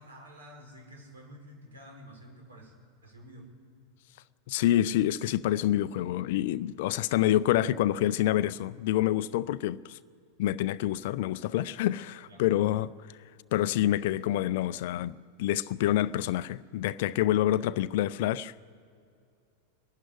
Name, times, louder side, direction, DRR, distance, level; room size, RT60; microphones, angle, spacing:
voice 1, 0.0-2.7 3.0-3.4 12.3-12.4, equal, 70° right, 4.7 m, -50 dB
voice 2, 4.5-10.0 10.4-12.9 13.5-18.5, left 13 dB, 50° left, 0.4 m, -27 dB
22.0 x 12.5 x 9.9 m
figure-of-eight pair, 90°, 0 cm